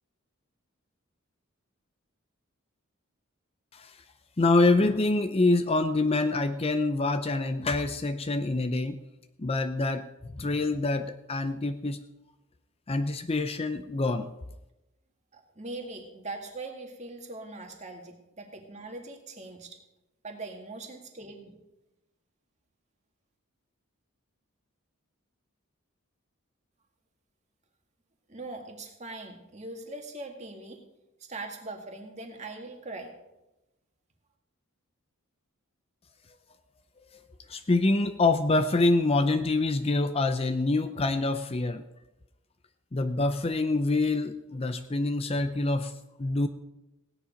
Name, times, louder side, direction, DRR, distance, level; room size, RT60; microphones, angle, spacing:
voice 1, 4.4-9.0 9.4-12.0 12.9-14.3 37.5-41.8 42.9-46.5, left 2 dB, 25° left, 8 dB, 0.5 m, -26 dB
voice 2, 15.3-19.8 20.2-21.6 28.3-30.8 31.2-33.1, right 2 dB, 30° right, 3 dB, 2.0 m, -41 dB
16.5 x 9.9 x 5.1 m, 0.94 s
head